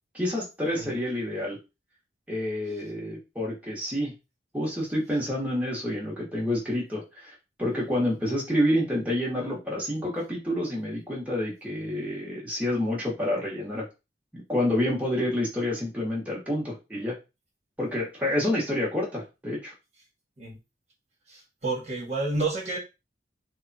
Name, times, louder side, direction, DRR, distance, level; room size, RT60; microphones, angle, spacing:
voice 1, 0.1-1.6 2.3-4.1 4.5-13.9 14.5-17.2 17.8-19.7, left 1 dB, 10° right, -5 dB, 1.2 m, -28 dB
voice 2, 21.3-22.8, right 3 dB, 40° right, -2 dB, 1.3 m, -30 dB
3.4 x 2.3 x 4.0 m, 0.26 s
head